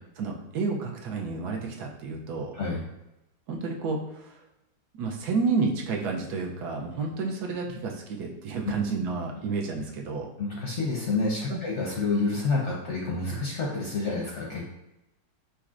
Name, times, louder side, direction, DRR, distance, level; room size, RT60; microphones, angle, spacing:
voice 1, 0.2-2.5 3.5-4.4 4.9-10.3 11.5-11.6, right 4 dB, 70° right, 1 dB, 1.1 m, -30 dB
voice 2, 10.4-14.7, left 3 dB, 60° left, -3 dB, 0.8 m, -28 dB
4.5 x 4.1 x 2.4 m, 0.93 s
omnidirectional pair, 1.9 m